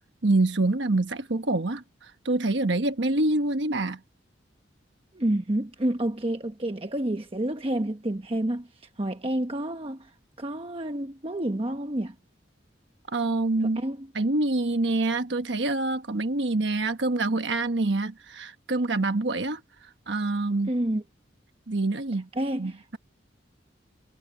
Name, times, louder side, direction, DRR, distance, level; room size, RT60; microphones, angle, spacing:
voice 1, 0.2-4.0 13.1-13.8 14.1-19.6 20.1-20.7 21.7-22.3 22.6-23.0, right 2 dB, 70° right, 1.2 m, -26 dB
voice 2, 5.1-12.1 13.6-14.1 20.7-21.0 22.3-22.8, right 1 dB, 30° right, 1.1 m, -29 dB
head